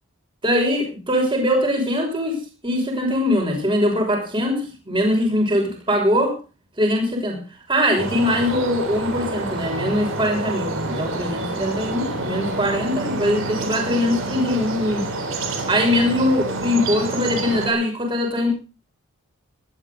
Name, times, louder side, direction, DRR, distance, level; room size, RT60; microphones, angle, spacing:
voice 1, 0.4-6.4 6.8-7.4 7.7-15.1 15.7-18.5, left 1 dB, 20° right, 1 dB, 6.1 m, -22 dB
sound 1, 8.0-17.7, right 2 dB, 65° right, 3.7 m, -28 dB
19.0 x 12.5 x 3.9 m, 0.32 s
head